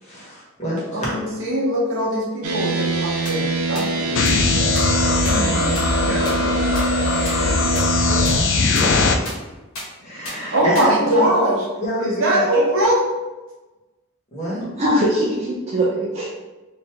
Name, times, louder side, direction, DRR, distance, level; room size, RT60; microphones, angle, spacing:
voice 1, 0.0-1.2 5.2-6.6 7.4-8.1 8.8-8.9 10.0-11.3 11.8-12.5 14.3-14.6, equal, 30° left, -7 dB, 1.3 m, -27 dB
voice 2, 0.9-4.3 8.1-8.4 10.5-11.6 12.0-13.0, right 1 dB, 60° right, -4 dB, 0.9 m, -21 dB
sound 1, 2.4-8.4, right 3 dB, 85° right, 0.5 m, -24 dB
sound 2, 3.2-3.3 3.7-3.8 4.2-4.3 4.7-4.8 5.2-5.3 5.7-5.8 6.2-6.3 6.7-6.8 7.2-7.3 7.7-7.8 8.2-8.3 8.7-8.8 9.2-9.3 9.7-9.8 10.2-10.3 10.7-10.8, left 1 dB, 75° left, 1.4 m, -31 dB
sound 3, 4.1-9.1, left 4 dB, 55° left, 0.3 m, -20 dB
voice 3, 14.6-16.3, equal, 30° right, -5 dB, 0.5 m, -21 dB
3.2 x 2.7 x 3.4 m, 1.1 s
head